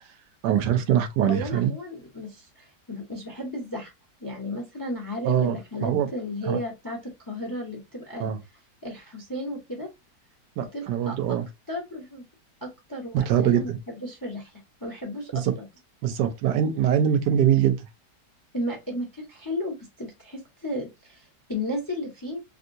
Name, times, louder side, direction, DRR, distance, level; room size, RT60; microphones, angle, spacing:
voice 1, 0.4-1.7 5.2-6.1 6.5-6.6 8.2-8.4 10.6-11.5 13.1-13.8 15.3-15.5 16.0-17.8, right 9 dB, 80° right, 1.2 m, -23 dB
voice 2, 1.2-3.9 4.2-8.3 8.8-9.9 10.7-11.4 11.7-12.2 12.6-13.7 14.0-15.7 18.5-22.4, left 1 dB, 25° left, 0.5 m, -34 dB
3.5 x 2.7 x 2.5 m
omnidirectional pair, 1.8 m